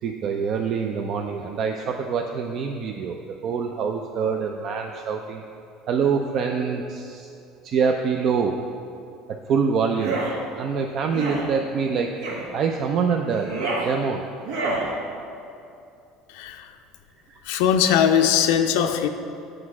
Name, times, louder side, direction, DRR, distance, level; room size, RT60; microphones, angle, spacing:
voice 1, 0.0-5.4 5.9-7.3 7.6-8.6 9.3-10.2 10.6-12.1 12.5-14.2 17.3-17.4, right 6 dB, 50° right, 4 dB, 0.4 m, -25 dB
sound 1, 9.9-10.3 11.1-11.4 12.2-12.5 13.3-13.9 14.4-14.9, right 3 dB, 85° right, 1.3 m, -28 dB
voice 2, 16.3-16.8 17.4-19.1, left 8 dB, 80° left, 6 dB, 0.4 m, -20 dB
6.3 x 4.9 x 5.9 m, 2.6 s
supercardioid pair, 110°, 0 cm